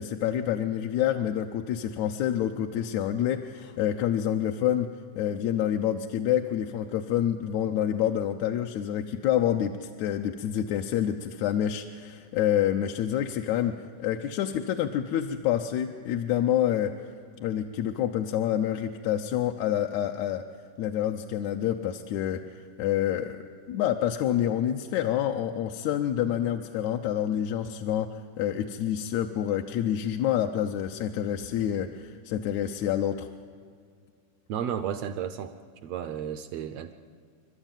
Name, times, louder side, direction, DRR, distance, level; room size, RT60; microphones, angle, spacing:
voice 1, 0.0-4.9 5.2-13.7 14.0-16.9 17.4-20.4 20.8-23.4 23.7-28.1 28.4-33.3, left 10 dB, 75° left, 4 dB, 1.9 m, -27 dB
voice 2, 34.5-35.5 35.8-36.9, right 9 dB, 75° right, 10 dB, 1.5 m, -33 dB
28.0 x 12.5 x 9.0 m, 2.1 s
omnidirectional pair, 3.6 m